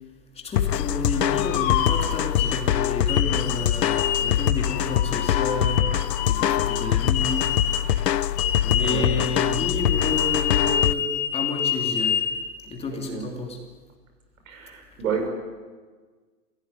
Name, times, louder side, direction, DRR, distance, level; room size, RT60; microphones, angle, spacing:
voice 1, 0.3-5.9 6.2-7.5 8.6-12.2 12.6-13.6, left 3 dB, 10° left, 2 dB, 2.9 m, -30 dB
sound 1, 0.5-10.9, left 11 dB, 75° left, 0.8 m, -24 dB
sound 2, 1.4-2.6 3.1-7.9 8.4-12.4, left 9 dB, 40° left, 4.1 m, -27 dB
voice 2, 12.9-13.3 14.5-15.3, right 6 dB, 55° right, 4 dB, 6.8 m, -30 dB
25.5 x 16.5 x 9.9 m, 1.4 s
hypercardioid pair, 140°, 49 cm